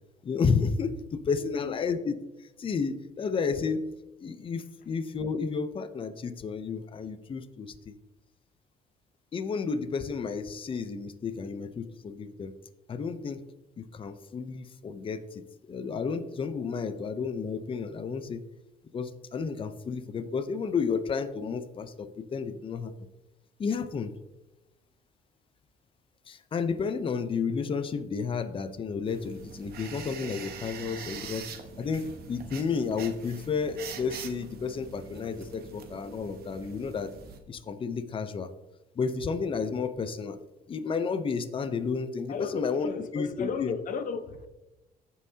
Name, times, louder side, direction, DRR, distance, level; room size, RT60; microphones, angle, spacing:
voice 1, 0.2-3.9 4.2-7.9 9.3-12.5 12.9-13.4 13.8-18.5 18.9-22.9 23.6-24.2 26.3-31.5 31.8-37.1 37.5-38.5 39.0-40.4 40.7-43.8, left 5 dB, 30° left, 0.7 m, -32 dB
voice 2, 1.3-1.8 42.3-44.5, left 6 dB, 50° left, 1.0 m, -35 dB
sound 1, 29.1-37.4, right 6 dB, 65° right, 1.2 m, -44 dB
15.5 x 5.6 x 2.8 m
cardioid pair, 110°, 17 cm